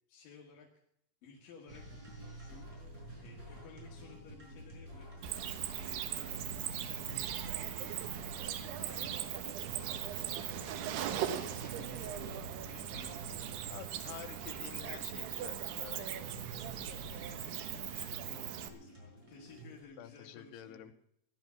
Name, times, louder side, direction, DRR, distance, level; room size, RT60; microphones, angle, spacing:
voice 1, 0.1-0.7 1.2-1.9 2.3-5.2 5.8-10.0 10.6-13.6 14.3-14.4 17.1-20.9, left 5 dB, 60° left, -3 dB, 3.5 m, -56 dB
sound 1, 1.7-19.8, right 1 dB, 20° right, 6.2 m, -49 dB
Cricket, 5.2-18.7, right 11 dB, 80° right, 3.1 m, -39 dB
voice 2, 13.7-16.1 20.0-20.9, left 11 dB, 80° left, 8 dB, 3.0 m, -49 dB
16.5 x 11.5 x 5.9 m, 0.74 s
omnidirectional pair, 4.8 m